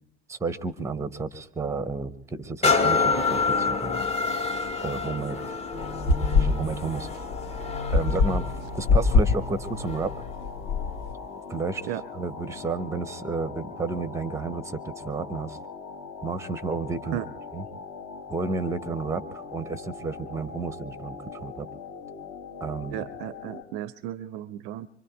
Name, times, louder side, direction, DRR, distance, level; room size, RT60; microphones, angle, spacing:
voice 1, 0.3-4.0 4.8-5.6 6.3-7.1 7.9-10.2 11.5-15.6 16.2-17.2 17.5-17.6 18.3-21.7 22.6-23.0, right 4 dB, 10° right, 14 dB, 0.7 m, -32 dB
sound 1, 2.6-10.2 10.8-10.9, left 4 dB, 20° left, 0.9 m, -28 dB
sound 2, 5.7-11.1, left 4 dB, 65° left, 1.4 m, -25 dB
sound 3, 5.7-23.6, left 5 dB, 45° left, 1.6 m, -41 dB
voice 2, 22.9-24.9, right 12 dB, 50° right, 18 dB, 0.5 m, -34 dB
24.5 x 24.5 x 2.3 m, 0.80 s
figure-of-eight pair, 70°, 35 cm